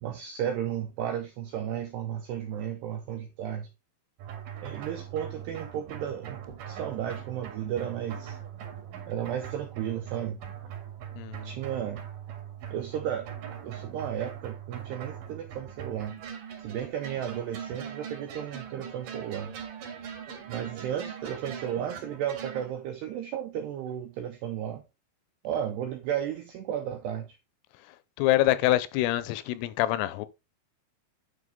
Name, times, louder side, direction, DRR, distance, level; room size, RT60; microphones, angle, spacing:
voice 1, 0.0-3.7 4.6-8.4 9.1-10.7 11.4-12.0 12.7-13.3 13.6-16.2 16.6-19.6 20.5-24.8 25.4-27.4, right 10 dB, 80° right, 2.4 m, -34 dB
sound 1, 4.2-22.7, right 8 dB, 55° right, 2.8 m, -41 dB
voice 2, 11.2-11.5 28.2-30.3, left 15 dB, 85° left, 3.2 m, -25 dB
9.8 x 5.3 x 3.6 m
omnidirectional pair, 5.9 m